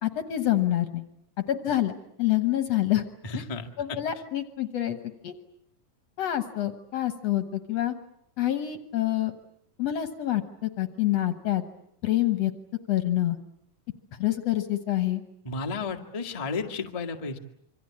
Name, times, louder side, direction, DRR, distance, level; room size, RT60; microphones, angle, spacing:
voice 1, 0.0-1.0 1.5-1.9 2.2-3.0 3.3-3.4 3.8-5.0 5.2-5.3 6.2-8.0 8.4-9.3 9.8-11.6 12.0-12.5 12.9-13.4 14.2-15.2, left 13 dB, 60° left, 10 dB, 1.8 m, -26 dB
voice 2, 3.2-4.0 15.4-17.4, left 4 dB, 35° left, 5 dB, 0.5 m, -33 dB
26.5 x 24.5 x 8.6 m, 0.71 s
omnidirectional pair, 4.1 m